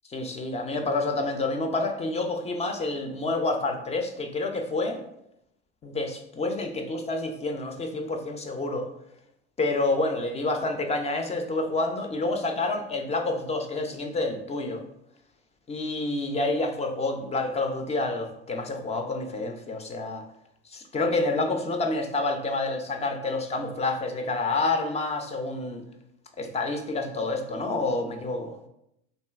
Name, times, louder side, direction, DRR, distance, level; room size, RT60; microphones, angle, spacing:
voice 1, 0.1-5.0 5.8-8.9 9.6-14.8 15.7-20.2 20.7-25.8 26.4-28.6, left 2 dB, 20° left, 5 dB, 0.4 m, -28 dB
3.2 x 2.6 x 2.3 m, 0.80 s
hypercardioid pair, 75°, 32 cm